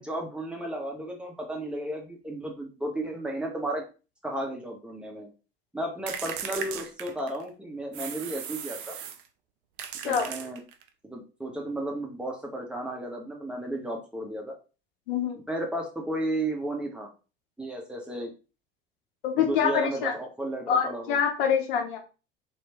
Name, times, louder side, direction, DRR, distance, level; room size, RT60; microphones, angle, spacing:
voice 1, 0.0-3.8 4.2-5.3 5.7-9.0 10.0-10.6 11.0-14.5 15.5-17.1 17.6-18.3 19.4-21.2, right 1 dB, 5° right, 0 dB, 0.7 m, -33 dB
sound 1, 6.1-7.5 7.9-9.3 9.8-10.9, right 8 dB, 60° right, 0.4 m, -37 dB
voice 2, 15.1-15.4 19.2-20.1 20.7-22.0, left 7 dB, 60° left, 5 dB, 0.7 m, -25 dB
2.9 x 2.1 x 2.8 m, 0.33 s
figure-of-eight pair, 70°, 29 cm